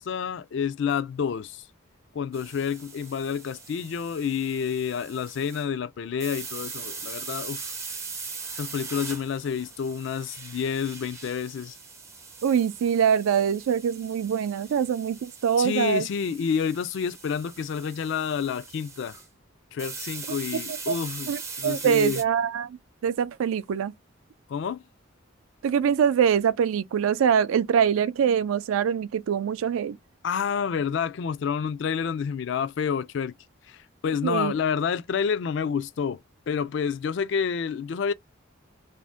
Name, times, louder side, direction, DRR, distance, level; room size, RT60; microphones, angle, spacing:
voice 1, 0.0-1.6 2.1-7.7 8.6-11.8 15.6-19.2 19.7-21.3 21.6-22.2 24.5-24.8 30.2-33.4 33.7-38.1, left 7 dB, 60° left, 0.3 m, -29 dB
sound 1, 2.3-5.7 6.2-19.3 19.8-22.2, right 4 dB, 15° right, 0.4 m, -41 dB
voice 2, 12.4-16.1 20.7-20.9 21.3-23.9 25.6-30.0 34.2-34.5, right 8 dB, 80° right, 0.3 m, -24 dB
2.6 x 2.1 x 3.3 m
head